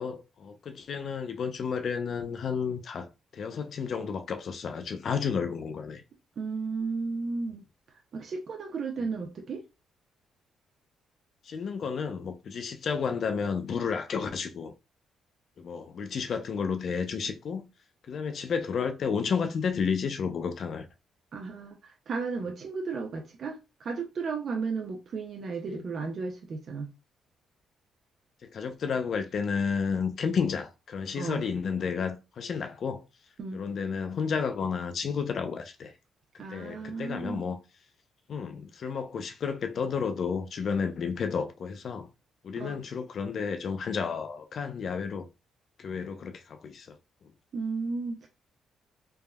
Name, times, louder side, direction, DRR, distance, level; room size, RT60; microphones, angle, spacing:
voice 1, 0.0-3.1 3.3-6.0 11.4-14.7 15.6-17.7 18.1-20.9 25.7-25.8 28.4-33.0 33.5-35.9 36.5-37.6 38.3-42.1 42.4-45.3 45.8-47.0, left 6 dB, 55° left, 0.4 m, -31 dB
voice 2, 6.4-7.6 7.9-9.6 21.3-26.9 31.2-31.4 33.4-33.6 36.4-37.5 42.6-42.8 47.5-48.3, right 4 dB, 55° right, 0.4 m, -34 dB
3.4 x 2.0 x 2.2 m
cardioid pair, 90°, 0 cm